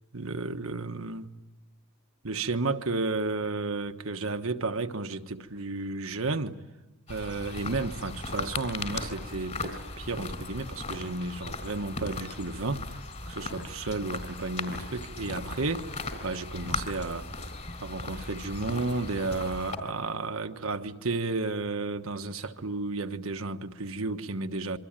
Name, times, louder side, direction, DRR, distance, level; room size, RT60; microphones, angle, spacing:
voice 1, 0.1-1.3 2.2-6.6 7.1-13.0 13.3-17.3 17.8-24.8, right 3 dB, 70° right, 1.3 m, -32 dB
sound 1, 7.1-19.8, left 3 dB, 35° left, 3.7 m, -37 dB
27.0 x 24.0 x 9.0 m
head